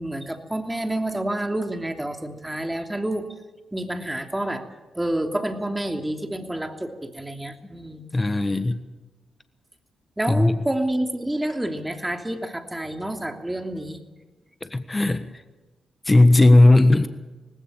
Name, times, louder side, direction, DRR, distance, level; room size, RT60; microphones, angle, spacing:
voice 1, 0.0-3.3 3.7-4.6 4.9-8.1 10.2-14.0, right 1 dB, 15° right, 5 dB, 3.0 m, -28 dB
voice 2, 8.1-8.8 10.3-10.6 14.6-15.2 16.1-17.1, left 2 dB, 25° left, 10 dB, 1.4 m, -16 dB
19.0 x 17.0 x 8.8 m, 1.2 s
supercardioid pair, 50°, 0 cm